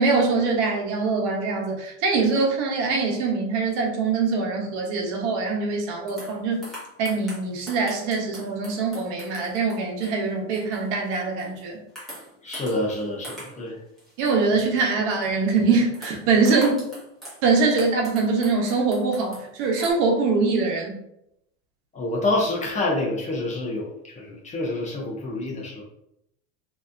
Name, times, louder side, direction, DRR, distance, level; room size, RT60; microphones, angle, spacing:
voice 1, 0.0-6.6 7.0-11.8 14.2-16.8 17.4-21.0, right 4 dB, 65° right, 1 dB, 1.0 m, -23 dB
sound 1, 6.1-11.6 12.0-13.7 14.0-15.3 15.9-17.4 17.8-19.9, equal, ahead, 1.3 m, -43 dB
voice 2, 12.4-13.7 21.9-25.8, left 2 dB, 20° left, -1 dB, 0.5 m, -27 dB
3.2 x 2.7 x 2.5 m, 0.80 s
supercardioid pair, 130°, 38 cm